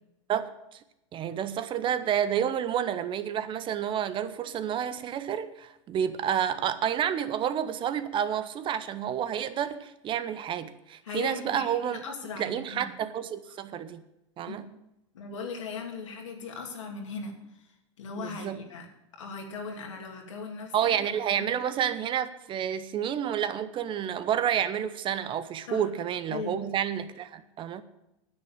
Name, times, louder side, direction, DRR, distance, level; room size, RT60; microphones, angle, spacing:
voice 1, 0.3-0.8 1.1-12.0 12.4-14.0 14.4-14.7 18.2-18.6 20.7-27.8, right 9 dB, 35° right, 0.9 m, -30 dB
voice 2, 11.0-12.9 14.5-14.6 15.1-18.9 19.1-20.9 21.4-21.5 25.7-25.9 26.3-26.7, left 4 dB, 85° left, 2.7 m, -38 dB
9.7 x 8.5 x 7.3 m
hypercardioid pair, 115°, 15 cm